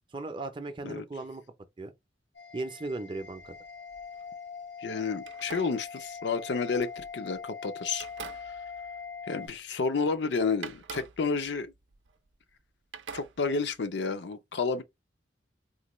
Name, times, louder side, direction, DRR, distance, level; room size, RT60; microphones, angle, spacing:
voice 1, 0.1-1.4 1.8-1.9 2.5-3.5, right 2 dB, 25° right, 0.5 m, -37 dB
sound 1, 2.3-9.5, left 5 dB, 85° left, 1.5 m, -42 dB
sound 2, 3.1-4.3 5.2-7.5 7.9-9.8 10.1-10.2 10.6-12.6 12.9-13.9, right 6 dB, 85° right, 0.5 m, -47 dB
voice 2, 4.8-8.1 9.3-11.7 13.1-14.8, left 4 dB, 70° left, 0.5 m, -30 dB
3.9 x 2.2 x 3.0 m
head